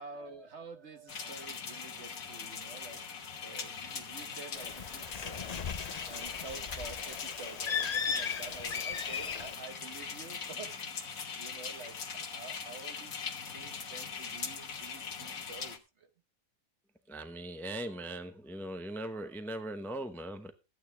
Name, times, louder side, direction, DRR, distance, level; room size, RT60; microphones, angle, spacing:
voice 1, 0.0-3.1 3.4-5.7 6.1-10.8 11.4-13.2 13.5-16.1, right 4 dB, 55° right, 1.5 m, -49 dB
voice 2, 0.9-1.4 17.1-20.5, right 1 dB, ahead, 0.7 m, -40 dB
sound 1, 1.1-15.8, left 6 dB, 75° left, 1.8 m, -41 dB
Bird, 4.5-9.5, left 7 dB, 45° left, 0.5 m, -37 dB
sound 2, 9.8-15.0, right 4 dB, 85° right, 2.1 m, -59 dB
14.5 x 9.4 x 3.4 m
omnidirectional pair, 1.5 m